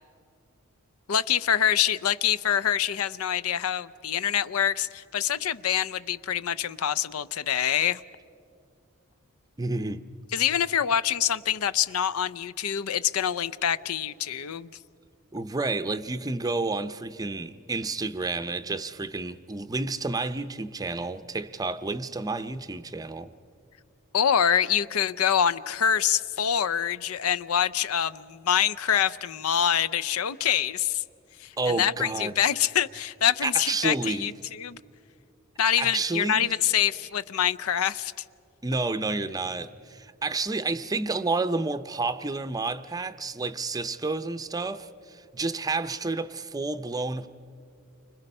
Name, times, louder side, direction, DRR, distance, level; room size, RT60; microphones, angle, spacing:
voice 1, 1.1-8.0 10.3-14.7 24.1-31.0 31.4-34.8 35.6-38.1, left 9 dB, 80° left, 0.5 m, -25 dB
voice 2, 9.6-10.0 15.3-23.3 31.6-32.4 33.4-34.3 35.8-36.5 38.6-47.3, right 3 dB, 15° right, 0.6 m, -30 dB
30.0 x 25.5 x 5.5 m
head